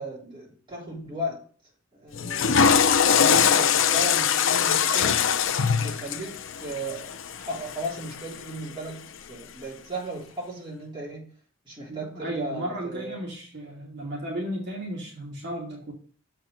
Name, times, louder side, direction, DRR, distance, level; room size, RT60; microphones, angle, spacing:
voice 1, 0.0-1.4 1.9-2.7 3.1-5.4 5.7-11.3 11.6-13.2, right 1 dB, 25° right, 3.3 m, -36 dB
Water / Toilet flush, 2.1-8.4, left 7 dB, 65° left, 0.6 m, -22 dB
voice 2, 11.9-15.9, right 1 dB, 55° right, 2.3 m, -34 dB
7.4 x 4.6 x 6.4 m
head